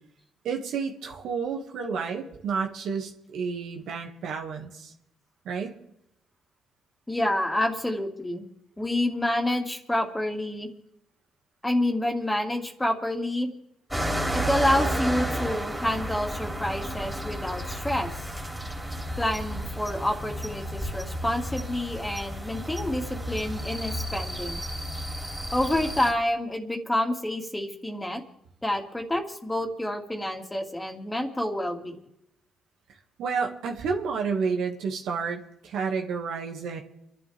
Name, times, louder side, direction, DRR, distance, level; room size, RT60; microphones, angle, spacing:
voice 1, 0.4-4.9 5.5-5.7 33.2-36.8, right 5 dB, 75° right, 2 dB, 2.1 m, -30 dB
voice 2, 7.1-8.4 8.8-10.7 11.6-13.5 14.3-18.3 19.2-24.6 25.5-28.2 28.6-32.0, left 1 dB, 10° left, 3 dB, 2.5 m, -28 dB
sound 1, 13.9-26.1, right 1 dB, 5° right, 3.2 m, -32 dB
29.0 x 11.5 x 3.6 m, 0.80 s
cardioid pair, 90°, 0 cm